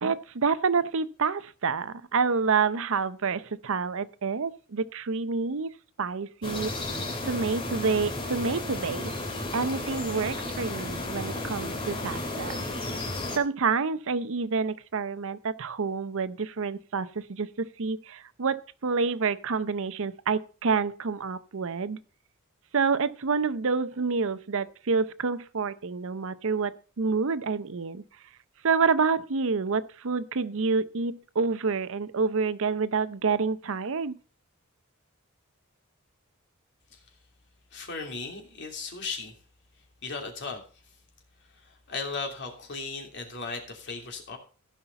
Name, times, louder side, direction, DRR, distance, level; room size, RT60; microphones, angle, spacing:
voice 1, 0.0-5.7 6.0-6.7 7.2-9.1 9.5-12.6 13.4-22.0 22.7-28.0 28.6-34.1, right 5 dB, 65° right, 0.7 m, -28 dB
sound 1, 6.4-13.4, left 2 dB, 25° left, 2.5 m, -33 dB
voice 2, 37.7-39.4 40.0-40.6 41.5-44.4, left 4 dB, 55° left, 3.0 m, -36 dB
15.5 x 5.7 x 5.8 m
head